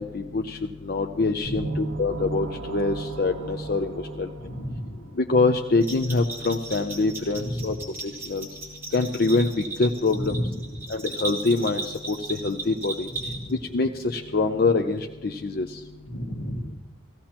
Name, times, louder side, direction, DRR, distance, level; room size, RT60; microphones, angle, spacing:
voice 1, 0.0-4.3 5.2-7.8 8.0-8.5 8.9-9.5 9.8-10.4 10.9-13.1 13.7-15.7, left 3 dB, 50° left, 4 dB, 0.5 m, -25 dB
sound 1, 1.4-5.2, right 3 dB, 80° right, 0.8 m, -35 dB
voice 2, 1.5-1.8 4.4-4.9 7.4-7.7 10.2-10.6 13.2-13.5 16.1-16.7, equal, 75° left, 1 dB, 1.7 m, -32 dB
Bell, 5.8-13.7, right 3 dB, 10° right, 2.7 m, -36 dB
16.5 x 16.0 x 2.9 m, 1.2 s
head